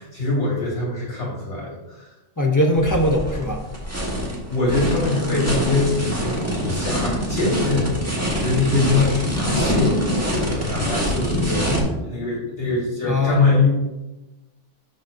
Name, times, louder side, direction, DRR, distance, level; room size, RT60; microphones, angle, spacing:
voice 1, 0.0-2.1 4.5-7.9 8.3-13.7, left 3 dB, 70° left, -4 dB, 2.8 m, -23 dB
voice 2, 2.4-3.6 13.1-13.5, left 1 dB, 30° left, 2 dB, 0.3 m, -20 dB
sound 1, 2.7-11.8, equal, 15° right, 1.2 m, -24 dB
12.0 x 3.9 x 2.5 m, 1.1 s
omnidirectional pair, 1.3 m